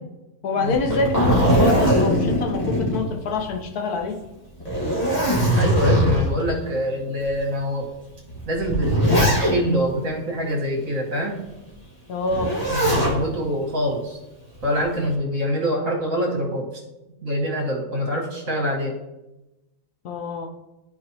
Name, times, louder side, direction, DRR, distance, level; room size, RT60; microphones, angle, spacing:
voice 1, 0.4-4.2 12.1-12.5 20.0-20.5, left 3 dB, 80° left, 3 dB, 1.5 m, -26 dB
Zipper (clothing), 0.7-3.6 3.9-4.0 4.6-6.4 7.2-7.3 8.3-9.8 12.3-13.2 14.5-15.0, equal, 25° left, 1.9 m, -20 dB
voice 2, 5.5-7.9 8.5-11.4 12.7-14.2 14.6-16.7 17.2-18.9, equal, 60° right, -2 dB, 2.2 m, -25 dB
13.0 x 4.6 x 3.0 m, 0.98 s
omnidirectional pair, 1.6 m